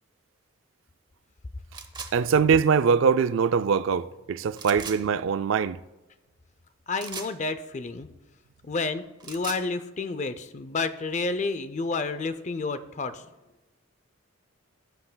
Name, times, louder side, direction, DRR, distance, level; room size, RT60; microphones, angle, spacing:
sound 1, 1.7-2.1 4.5-5.0 7.0-7.3 9.0-9.6, right 5 dB, 20° right, 0.6 m, -38 dB
voice 1, 2.1-5.8, right 6 dB, 60° right, 0.3 m, -22 dB
voice 2, 6.9-8.1 8.6-13.3, left 3 dB, 35° left, 0.4 m, -30 dB
15.0 x 7.8 x 2.2 m
head